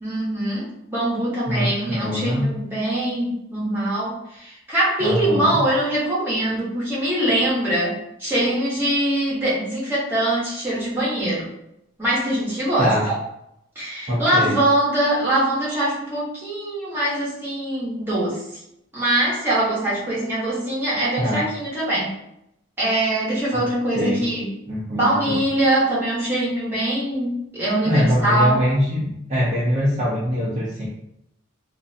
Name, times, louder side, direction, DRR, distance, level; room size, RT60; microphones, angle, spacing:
voice 1, 0.0-11.5 12.0-13.1 13.7-18.4 18.9-22.1 22.8-24.5 24.9-28.6, right 1 dB, 10° right, -9 dB, 0.9 m, -23 dB
voice 2, 1.5-2.5 5.0-5.6 12.8-13.1 14.1-14.6 21.2-21.4 23.9-24.2 24.7-25.4 27.9-30.9, equal, 30° right, -9 dB, 0.5 m, -23 dB
2.5 x 2.1 x 2.6 m, 0.80 s
head